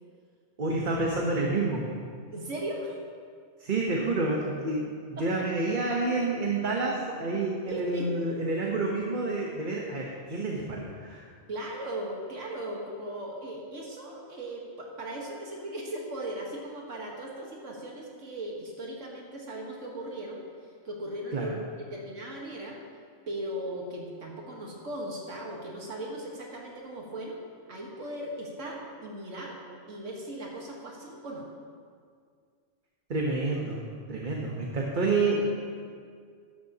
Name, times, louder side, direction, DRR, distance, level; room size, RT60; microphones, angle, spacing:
voice 1, 0.6-1.9 3.6-4.9 5.2-11.2 21.3-21.6 33.1-33.8 34.1-35.4, right 2 dB, 45° right, -2 dB, 1.1 m, -29 dB
voice 2, 2.3-3.0 5.2-5.3 7.7-8.1 11.5-20.4 20.9-21.5 21.9-22.8 23.3-27.4 27.7-29.6 29.9-31.5, right 1 dB, 85° right, -2 dB, 1.8 m, -38 dB
13.5 x 11.0 x 2.9 m, 2.1 s
omnidirectional pair, 1.3 m